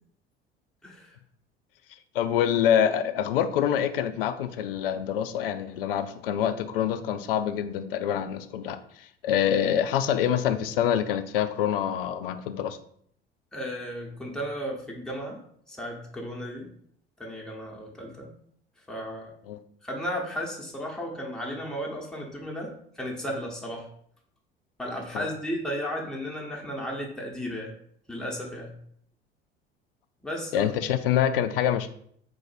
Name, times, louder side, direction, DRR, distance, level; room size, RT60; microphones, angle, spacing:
voice 1, 0.8-1.2 13.5-15.4 15.7-16.7 17.2-18.3 18.9-19.3 19.8-23.9 24.8-27.7 28.1-28.8 30.2-30.7, equal, ahead, -2 dB, 0.9 m, -34 dB
voice 2, 2.1-12.8 19.5-19.6 25.1-25.3 30.5-31.9, left 9 dB, 65° left, 11 dB, 0.4 m, -26 dB
3.9 x 2.6 x 4.3 m, 0.65 s
figure-of-eight pair, 65°, 30 cm